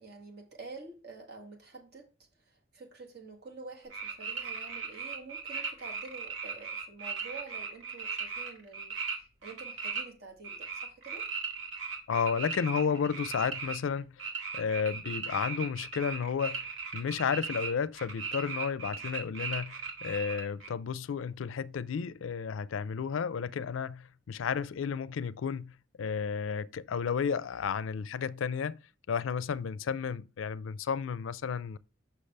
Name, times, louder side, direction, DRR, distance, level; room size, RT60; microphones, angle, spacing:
voice 1, 0.0-2.1 2.4-11.3, right 4 dB, 55° right, 1.7 m, -48 dB
sound 1, 3.9-9.2 9.4-10.0 10.4-17.7 18.0-20.7, right 5 dB, 80° right, 1.7 m, -37 dB
voice 2, 12.1-28.8 29.1-31.8, left 6 dB, 80° left, 0.4 m, -32 dB
6.6 x 5.9 x 3.3 m
head